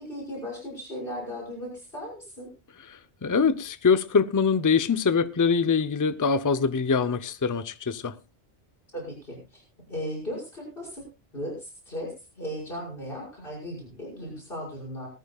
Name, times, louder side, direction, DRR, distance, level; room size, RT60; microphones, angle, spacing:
voice 1, 0.0-2.5 8.9-9.6 9.9-11.1 11.3-15.1, equal, 50° left, 6.3 m, -36 dB
voice 2, 3.2-8.1, left 5 dB, 25° left, 0.5 m, -23 dB
19.5 x 14.5 x 2.3 m
omnidirectional pair, 1.2 m